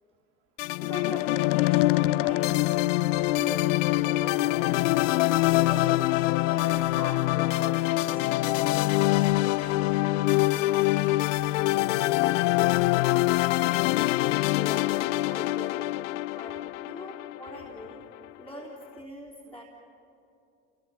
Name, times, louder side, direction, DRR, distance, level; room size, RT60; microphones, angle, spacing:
sound 1, 0.6-18.0, left 18 dB, 75° left, 0.5 m, -24 dB
voice 1, 0.8-2.7 3.1-5.2 5.6-8.3 14.6-15.9 16.3-18.0 18.4-19.6, equal, 5° left, -4 dB, 3.5 m, -42 dB
voice 2, 9.1-11.2 11.7-13.2, right 2 dB, 55° right, 1 dB, 3.3 m, -48 dB
28.5 x 18.0 x 7.6 m, 2.6 s
hypercardioid pair, 85°, 37 cm